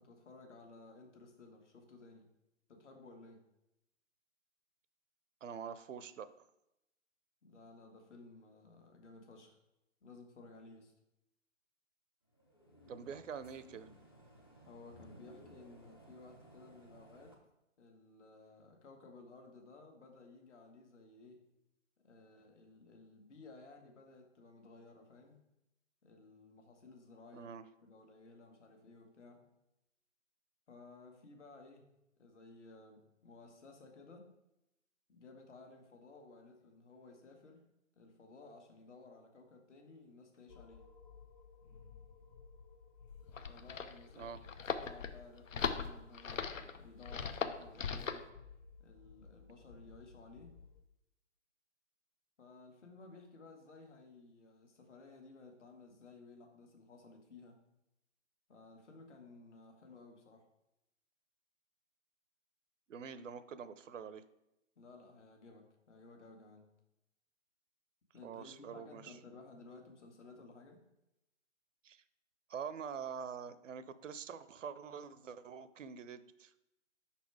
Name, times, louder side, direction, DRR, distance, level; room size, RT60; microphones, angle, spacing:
voice 1, 0.0-2.3 2.7-3.4 7.4-9.6 10.0-10.9 14.6-17.3 17.8-21.4 22.0-25.4 26.0-27.5 27.8-29.4 30.7-31.9 32.2-34.3 35.1-37.7 37.9-40.9 43.5-44.3 44.8-48.3 48.8-50.6 52.4-57.6 58.5-60.5 64.8-66.7 68.1-70.8, left 3 dB, 65° left, 3 dB, 1.5 m, -56 dB
voice 2, 5.4-6.3 12.9-13.9 27.3-27.6 44.2-44.4 62.9-64.2 68.2-69.2 71.8-72.0 72.5-76.5, right 7 dB, 75° right, 14 dB, 0.6 m, -45 dB
sound 1, 12.3-17.4, right 1 dB, 20° left, 0.4 m, -59 dB
sound 2, 40.5-50.8, left 5 dB, 40° left, 1.1 m, -57 dB
sound 3, 43.1-48.3, left 6 dB, 85° left, 0.7 m, -39 dB
5.6 x 4.2 x 4.6 m, 0.86 s
hypercardioid pair, 145°, 38 cm